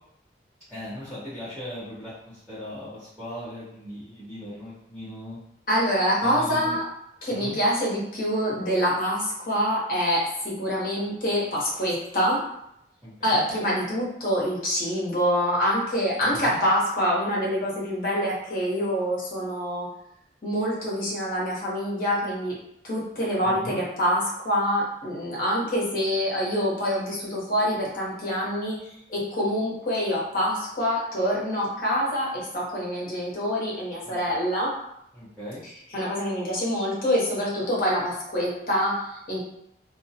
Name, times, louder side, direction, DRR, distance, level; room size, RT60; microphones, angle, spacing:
voice 1, 0.7-5.4 6.2-6.8 7.4-7.6 13.0-13.4 16.3-16.6 23.4-23.8 34.0-34.4 35.1-35.6, equal, ahead, -15 dB, 0.8 m, -38 dB
voice 2, 5.7-6.8 7.2-12.4 13.2-19.9 20.4-22.6 22.8-28.8 29.1-34.7 35.9-39.4, equal, 50° left, -5 dB, 0.8 m, -26 dB
2.3 x 2.1 x 2.7 m, 0.77 s
head